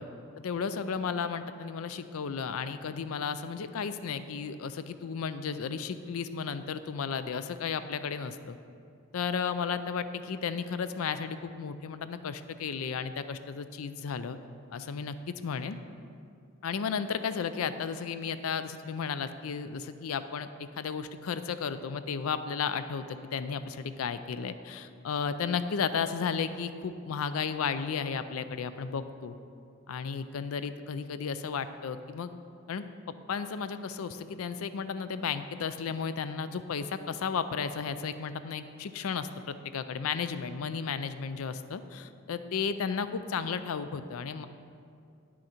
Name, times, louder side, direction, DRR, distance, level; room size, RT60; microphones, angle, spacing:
voice 1, 0.4-8.6 9.1-14.4 14.7-15.8 16.6-29.4 29.9-32.3 32.7-44.5, left 6 dB, 75° left, 11 dB, 0.4 m, -34 dB
9.2 x 6.3 x 4.3 m, 2.4 s
head